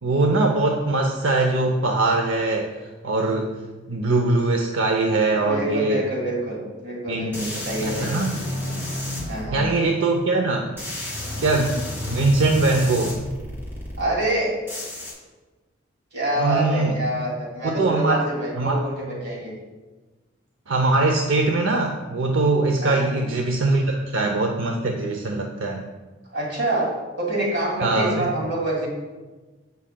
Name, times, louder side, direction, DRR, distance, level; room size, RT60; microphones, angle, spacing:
voice 1, 0.0-3.5 3.9-6.0 7.1-7.5 7.8-8.4 9.5-10.7 11.4-11.8 12.1-13.2 16.4-17.0 17.6-18.2 18.6-18.8 20.7-25.9 27.8-28.3, right 2 dB, 80° right, 2 dB, 0.6 m, -22 dB
voice 2, 5.5-8.1 9.2-9.6 14.0-14.5 16.1-19.5 22.8-23.1 23.7-24.0 26.3-28.9, right 1 dB, 55° right, -3 dB, 2.5 m, -26 dB
sound 1, 7.3-9.4 10.8-14.0 14.7-15.1, left 1 dB, 10° right, 2.4 m, -31 dB
15.0 x 5.5 x 2.2 m, 1.3 s
head